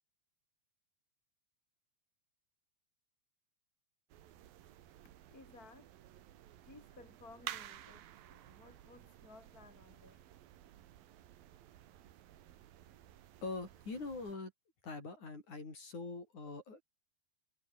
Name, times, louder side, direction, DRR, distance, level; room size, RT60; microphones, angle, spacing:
sound 1, 4.1-14.4, right 12 dB, 65° right, 3.0 m, -53 dB
voice 1, 5.3-5.9 6.7-10.2, left 3 dB, 20° left, 5.4 m, -58 dB
voice 2, 13.4-14.5 14.8-16.8, left 3 dB, 40° left, 7.9 m, -43 dB
omnidirectional pair, 5.1 m